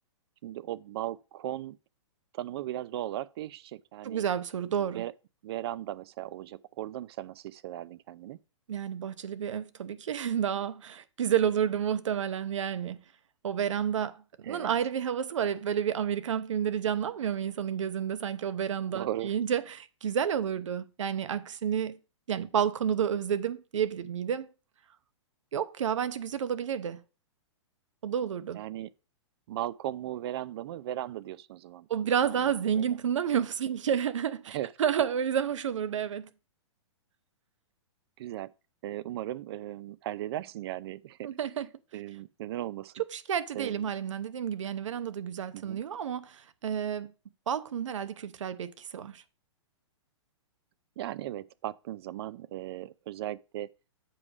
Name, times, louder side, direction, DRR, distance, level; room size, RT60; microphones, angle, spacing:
voice 1, 0.4-1.8 2.3-4.2 4.8-5.1 5.4-8.4 14.4-14.7 18.9-19.3 28.5-28.9 29.5-31.9 32.4-32.9 34.5-34.7 38.2-38.5 38.8-41.3 41.9-42.9 43.5-43.9 45.5-45.8 51.0-53.7, right 13 dB, 55° right, 0.5 m, -37 dB
voice 2, 4.0-5.0 8.7-13.0 13.4-22.0 22.3-24.5 25.5-27.0 28.0-28.6 31.9-36.3 41.2-41.7 43.1-47.1 47.5-49.2, right 8 dB, 80° right, 0.9 m, -30 dB
7.7 x 4.7 x 5.0 m
hypercardioid pair, 135°, 16 cm